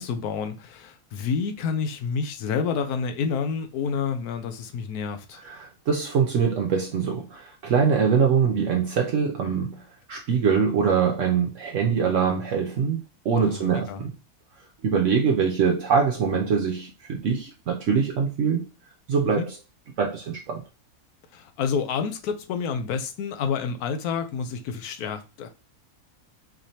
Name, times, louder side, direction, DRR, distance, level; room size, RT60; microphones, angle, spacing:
voice 1, 0.0-5.4 13.5-14.0 19.3-19.5 21.3-25.5, left 6 dB, 85° left, 1.1 m, -29 dB
voice 2, 5.4-14.1 14.8-18.7 19.1-19.6 20.0-20.6, right 6 dB, 65° right, 0.8 m, -23 dB
4.1 x 3.1 x 2.7 m
omnidirectional pair, 1.6 m